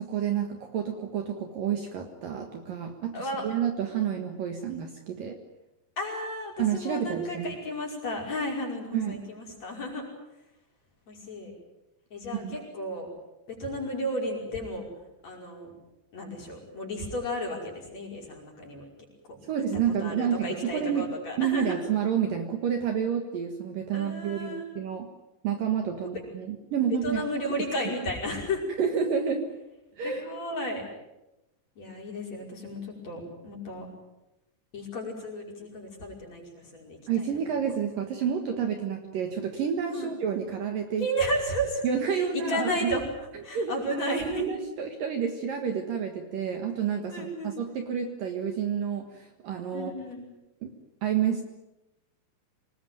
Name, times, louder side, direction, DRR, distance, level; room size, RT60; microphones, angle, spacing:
voice 1, 0.0-5.4 6.6-7.5 8.9-9.2 12.3-12.6 19.5-21.1 21.4-25.1 25.4-27.2 27.9-28.0 28.8-29.5 30.0-30.2 37.1-41.1 41.8-42.9 43.5-43.7 44.1-49.9 50.6-50.7 51.0-51.4, right 8 dB, 60° right, 5 dB, 2.8 m, -29 dB
voice 2, 3.1-3.5 6.0-10.0 11.1-11.5 12.1-13.1 13.5-14.9 15.2-15.7 16.1-18.9 19.3-19.4 20.0-21.8 23.9-24.7 26.9-28.6 30.0-30.8 31.8-33.9 34.7-37.3 39.9-40.1 41.0-41.8 42.1-43.0 43.4-44.5 47.1-47.5 49.7-50.3, equal, 35° left, -1 dB, 6.4 m, -33 dB
25.5 x 19.5 x 9.3 m, 0.95 s
omnidirectional pair, 5.2 m